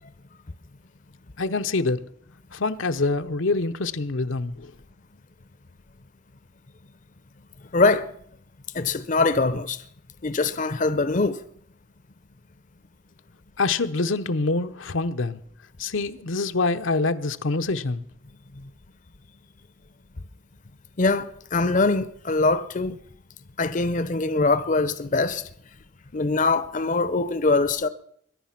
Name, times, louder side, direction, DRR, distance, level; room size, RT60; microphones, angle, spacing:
voice 1, 1.4-2.0 2.5-4.7 13.6-15.4 15.8-18.0, left 3 dB, 80° left, 0.9 m, -25 dB
voice 2, 7.7-8.1 8.7-9.8 10.2-11.4 21.0-23.0 23.6-25.4 26.1-27.9, left 3 dB, 40° left, 0.7 m, -23 dB
22.0 x 10.5 x 5.9 m
head